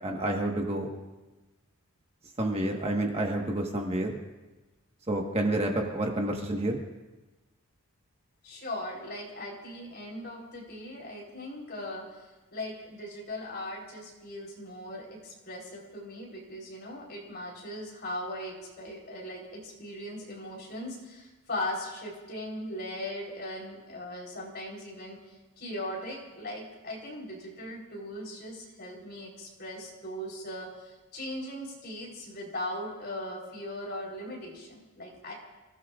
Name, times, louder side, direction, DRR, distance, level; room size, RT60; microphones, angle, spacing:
voice 1, 0.0-0.9 2.4-4.2 5.1-6.8, right 1 dB, 25° right, 1 dB, 1.4 m, -29 dB
voice 2, 8.4-12.0 12.5-35.3, left 1 dB, 45° left, -2 dB, 3.9 m, -39 dB
29.0 x 16.0 x 2.5 m, 1.1 s
head